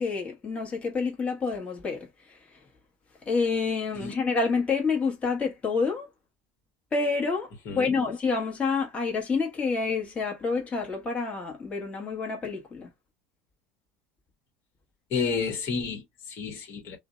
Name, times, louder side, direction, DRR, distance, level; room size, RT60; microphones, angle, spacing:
voice 1, 0.0-2.6 3.3-6.1 6.9-12.9, left 4 dB, 20° left, 1.1 m, -28 dB
voice 2, 7.7-8.0 15.1-17.0, left 5 dB, 55° left, 1.1 m, -31 dB
2.5 x 2.0 x 2.5 m
supercardioid pair, 110°, 6 cm